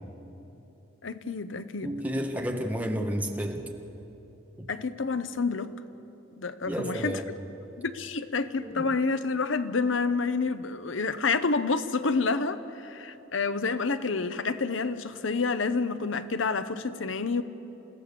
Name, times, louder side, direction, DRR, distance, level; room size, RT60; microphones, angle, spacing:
voice 1, 1.0-1.9 4.7-5.7 6.4-7.2 7.8-17.4, left 4 dB, 70° left, 12 dB, 0.9 m, -28 dB
voice 2, 1.8-3.7 4.6-4.7 6.6-7.3 8.6-8.9, equal, 10° right, 2 dB, 1.7 m, -31 dB
29.0 x 15.5 x 7.0 m, 3.0 s
head